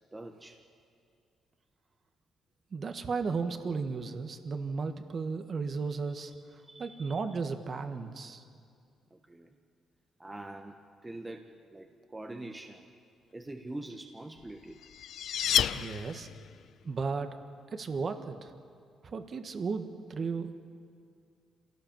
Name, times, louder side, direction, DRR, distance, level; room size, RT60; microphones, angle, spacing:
voice 1, 0.1-0.6 6.6-7.2 9.1-9.5 10.2-13.0 13.3-14.8, right 2 dB, 15° right, 3 dB, 1.3 m, -44 dB
voice 2, 2.7-6.3 6.8-8.4 15.7-16.3 16.8-17.4 17.7-18.5 19.0-20.5, right 4 dB, 45° right, 7 dB, 1.6 m, -34 dB
sound 1, 14.5-16.6, left 10 dB, 70° left, 0.5 m, -30 dB
26.5 x 17.5 x 7.5 m, 2.3 s
cardioid pair, 90°, 0 cm